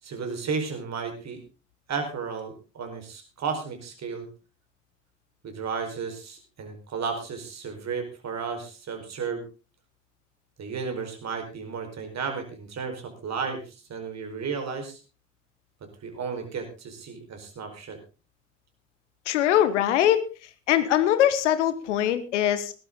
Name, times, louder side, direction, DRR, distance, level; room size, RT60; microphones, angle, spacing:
voice 1, 0.0-1.4 1.9-4.3 5.4-9.4 10.6-15.0 16.0-18.0, right 5 dB, 45° right, 5 dB, 4.8 m, -33 dB
voice 2, 19.3-20.3 20.7-22.7, left 11 dB, 75° left, 13 dB, 1.3 m, -22 dB
18.0 x 12.0 x 3.9 m, 0.33 s
figure-of-eight pair, 45°, 36 cm